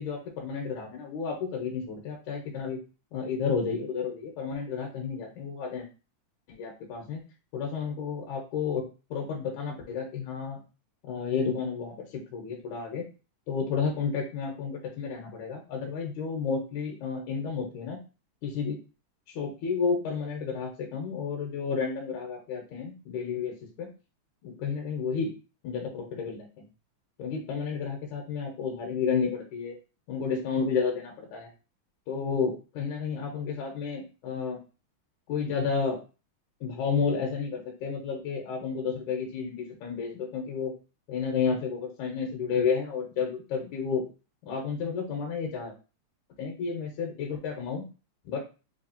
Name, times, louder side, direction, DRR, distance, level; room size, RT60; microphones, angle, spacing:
voice 1, 0.0-2.8 3.1-5.9 6.5-7.2 7.5-8.8 9.1-10.6 11.1-13.0 13.5-18.0 18.4-18.8 19.3-23.9 24.4-25.3 25.6-26.5 27.2-29.8 30.1-31.5 32.1-34.6 35.3-36.0 36.6-40.7 41.1-44.0 44.5-45.7 46.4-47.9 48.3-48.4, left 5 dB, 75° left, 0 dB, 2.1 m, -31 dB
4.8 x 2.8 x 2.7 m, 0.33 s
omnidirectional pair, 3.6 m